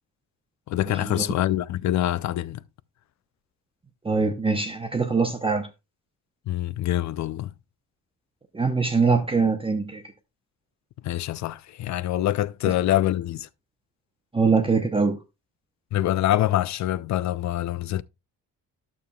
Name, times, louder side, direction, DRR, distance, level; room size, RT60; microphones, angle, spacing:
voice 1, 0.7-2.6 6.5-7.5 11.0-13.5 15.9-18.0, left 13 dB, 55° left, 0.4 m, -25 dB
voice 2, 4.0-5.7 8.5-10.0 14.3-15.2, right 4 dB, 15° right, 0.8 m, -23 dB
11.5 x 7.0 x 2.3 m
cardioid pair, 110°, 34 cm